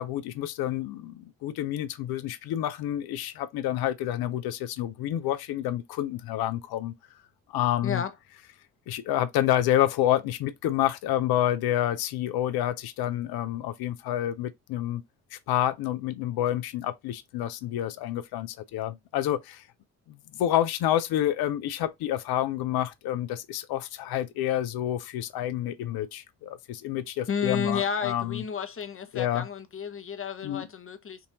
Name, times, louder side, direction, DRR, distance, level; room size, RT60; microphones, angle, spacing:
voice 1, 0.0-6.9 7.5-8.0 8.9-15.0 15.3-19.6 20.1-28.4 29.1-29.5 30.4-30.7, left 12 dB, 65° left, 0.6 m, -28 dB
voice 2, 27.3-31.2, left 7 dB, 35° left, 0.8 m, -31 dB
3.7 x 2.6 x 2.9 m
hypercardioid pair, 45°, 40 cm